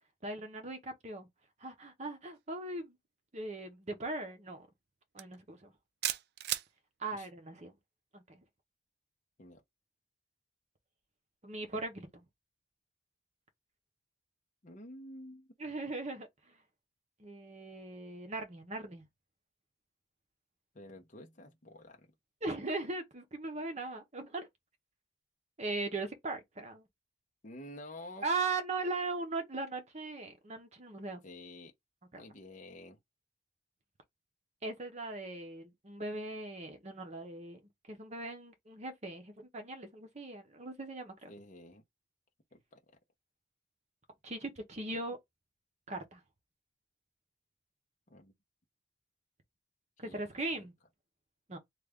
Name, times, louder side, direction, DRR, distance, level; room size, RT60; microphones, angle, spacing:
voice 1, 0.2-1.3 1.6-3.0 3.3-4.7 5.1-5.7 7.0-7.7 8.1-8.4 11.4-12.2 15.6-16.3 17.2-19.0 22.4-24.5 25.6-26.8 28.2-31.2 32.1-32.2 34.6-41.3 44.2-45.2 45.9-46.2 50.0-50.7 51.5-51.6, right 3 dB, 35° right, 0.8 m, -39 dB
sound 1, 5.2-5.3 6.0-6.7, right 13 dB, 55° right, 0.3 m, -33 dB
voice 2, 14.6-15.5 20.7-22.1 27.4-28.3 31.2-31.7 32.1-33.0 41.3-41.8 42.5-42.8 48.1-48.3 50.0-50.2 50.5-50.7, left 1 dB, 40° left, 0.8 m, -50 dB
3.2 x 2.4 x 3.5 m
head